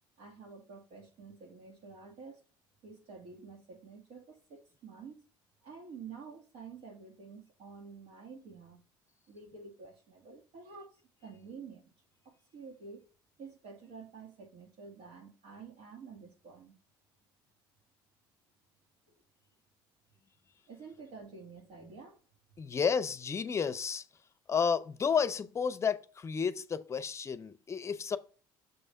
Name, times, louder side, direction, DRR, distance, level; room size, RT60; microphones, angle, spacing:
voice 1, 0.2-2.4 2.8-5.2 5.6-8.8 9.3-11.9 12.3-13.1 13.4-16.7 20.7-22.2, right 5 dB, 75° right, 2.0 m, -49 dB
voice 2, 22.6-24.1 24.5-28.2, left 6 dB, 30° left, 0.5 m, -31 dB
6.8 x 3.4 x 5.5 m
cardioid pair, 105°, 9 cm